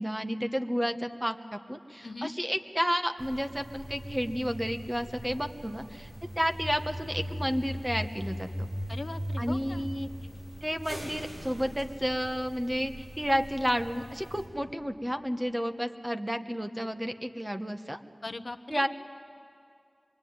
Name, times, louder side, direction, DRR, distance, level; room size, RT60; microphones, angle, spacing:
voice 1, 0.0-6.1 6.4-8.7 9.4-10.1 10.6-18.0 18.7-18.9, equal, 10° right, 7 dB, 1.3 m, -31 dB
sound 1, 3.2-14.5, equal, 75° right, 6.6 m, -40 dB
voice 2, 8.9-9.9 18.2-18.9, left 2 dB, 65° left, 10 dB, 0.8 m, -39 dB
25.5 x 22.5 x 9.6 m, 2.4 s
wide cardioid pair, 45°, 0 cm